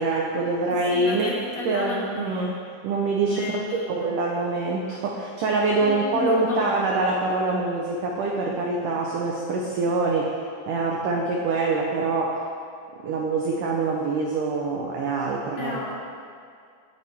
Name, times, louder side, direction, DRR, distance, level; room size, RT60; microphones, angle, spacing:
voice 1, 0.0-1.4 1.7-2.6 2.8-10.3 10.7-12.4 13.0-15.9, right 3 dB, 75° right, -1 dB, 1.9 m, -25 dB
voice 2, 0.7-2.5 3.2-4.2 5.8-6.8 15.6-15.9, left 2 dB, 60° left, -4 dB, 1.9 m, -33 dB
19.0 x 9.1 x 3.6 m, 2.3 s
omnidirectional pair, 5.1 m